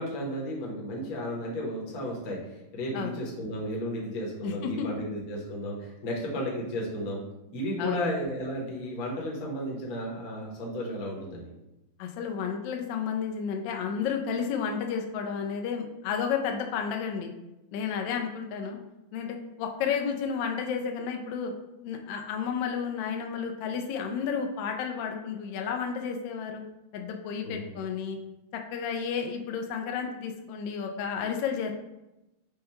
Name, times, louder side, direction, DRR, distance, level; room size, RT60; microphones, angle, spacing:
voice 1, 0.0-7.2 7.5-11.5 27.4-27.7, equal, 50° left, -3 dB, 1.4 m, -33 dB
voice 2, 4.4-4.9 7.8-8.1 12.0-17.3 17.7-18.8 19.1-21.5 21.8-26.6 26.9-28.2 28.5-31.7, left 6 dB, 75° left, 3 dB, 1.2 m, -32 dB
5.3 x 2.2 x 4.3 m, 0.95 s
omnidirectional pair, 2.3 m